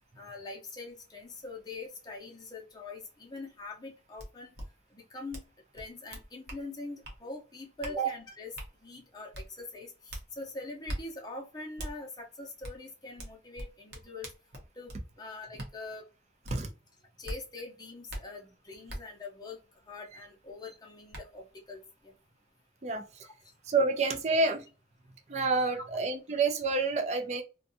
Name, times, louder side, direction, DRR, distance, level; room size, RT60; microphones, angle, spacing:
voice 1, 0.2-4.5 4.9-5.4 5.7-8.5 8.8-14.3 14.8-14.9 15.2-16.0 17.2-19.6 19.9-22.1 23.2-23.3, left 2 dB, 20° left, 1 dB, 0.6 m, -43 dB
sound 1, 4.2-4.3 4.5-4.7 5.3-5.5 5.7-6.6 7.0-7.2 7.8-8.0 8.6-8.7 9.3-9.5 10.1-10.2 10.9-11.0 11.8-11.9 12.6-12.8 13.2-15.0 15.6-15.7 16.4-16.6 17.2-17.4 18.1-18.2 18.9-19.0 20.5-20.6 21.1-21.2, right 1 dB, 60° right, 0.8 m, -40 dB
voice 2, 22.8-23.3 23.7-24.7 25.3-27.4, right 3 dB, 40° right, 4 dB, 0.4 m, -28 dB
2.5 x 2.3 x 2.6 m, 0.32 s
head